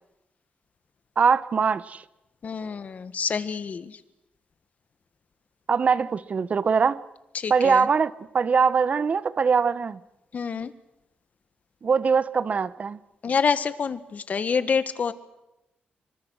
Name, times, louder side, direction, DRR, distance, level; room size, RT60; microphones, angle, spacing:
voice 1, 1.2-2.0 5.7-7.0 7.5-10.0 11.8-13.0, right 5 dB, 45° right, 1.0 m, -22 dB
voice 2, 2.4-4.0 7.3-7.9 10.3-10.7 13.2-15.1, left 6 dB, 50° left, 1.6 m, -27 dB
27.5 x 24.5 x 6.4 m
cardioid pair, 105°, 3 cm